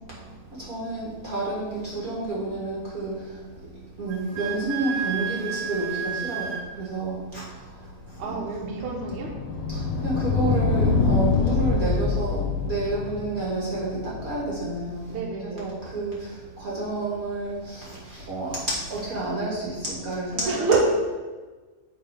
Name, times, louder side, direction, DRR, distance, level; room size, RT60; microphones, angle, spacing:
voice 1, 0.0-8.5 9.7-15.2 15.5-20.8, right 2 dB, 40° right, -6 dB, 1.4 m, -30 dB
Wind instrument woodwind instrument, 4.1-6.7, right 8 dB, 75° right, 1.4 m, -31 dB
sound 1, 8.1-15.0, left 4 dB, 65° left, 1.7 m, -26 dB
voice 2, 8.2-9.3 15.1-15.7 20.4-20.8, right 5 dB, 60° right, -1 dB, 1.7 m, -27 dB
8.7 x 4.1 x 5.1 m, 1.3 s
omnidirectional pair, 3.8 m